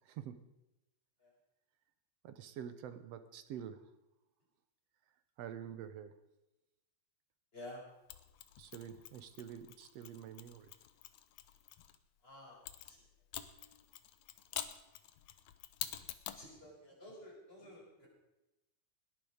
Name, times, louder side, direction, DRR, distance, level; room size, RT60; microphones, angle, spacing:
voice 1, 0.0-0.4 2.2-3.9 5.4-6.2 8.6-10.7, right 9 dB, 65° right, 11 dB, 1.8 m, -47 dB
Mechanisms, 8.1-12.0 12.7-16.5, left 12 dB, 75° left, 2.1 m, -47 dB
voice 2, 12.2-12.6 12.9-13.0 16.3-18.1, left 1 dB, 20° left, -4 dB, 5.8 m, -51 dB
19.0 x 10.5 x 5.1 m, 0.96 s
omnidirectional pair, 3.5 m